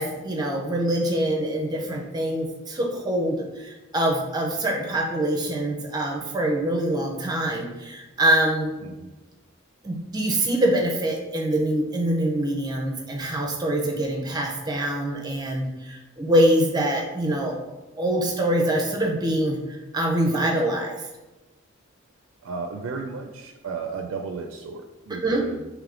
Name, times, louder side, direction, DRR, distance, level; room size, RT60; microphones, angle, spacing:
voice 1, 0.0-8.7 9.8-17.5 18.0-21.0 25.2-25.4, right 1 dB, 20° right, 1 dB, 0.5 m, -24 dB
voice 2, 22.4-25.6, right 4 dB, 75° right, 4 dB, 0.4 m, -34 dB
3.4 x 3.0 x 3.7 m, 1.1 s
head